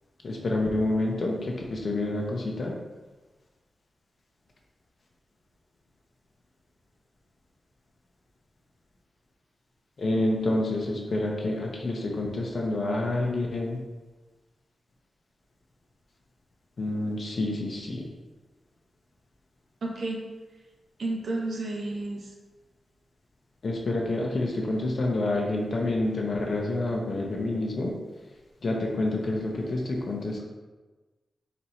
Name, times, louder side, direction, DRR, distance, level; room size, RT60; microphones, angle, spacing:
voice 1, 0.2-2.8 10.0-13.8 16.8-18.1 23.6-28.0 28.6-30.4, left 2 dB, 50° left, -1 dB, 0.6 m, -28 dB
voice 2, 19.8-20.2 21.0-22.2, right 2 dB, 65° right, -1 dB, 0.8 m, -31 dB
4.2 x 2.6 x 4.3 m, 1.2 s
wide cardioid pair, 130°, 0 cm